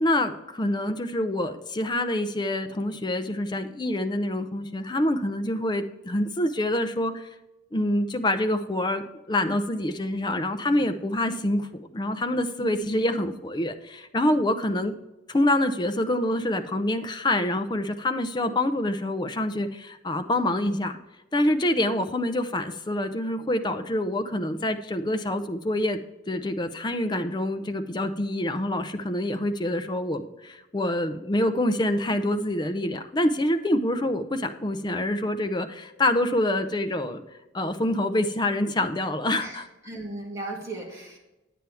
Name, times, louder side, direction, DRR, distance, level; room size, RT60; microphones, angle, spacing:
voice 1, 0.0-7.3 7.7-14.9 15.3-21.0 21.3-26.0 26.3-37.2 37.5-39.7, left 1 dB, 20° left, 8 dB, 0.6 m, -26 dB
voice 2, 12.6-13.0 39.4-41.2, right 2 dB, 15° right, -3 dB, 2.3 m, -37 dB
9.2 x 8.9 x 3.5 m, 1.0 s
head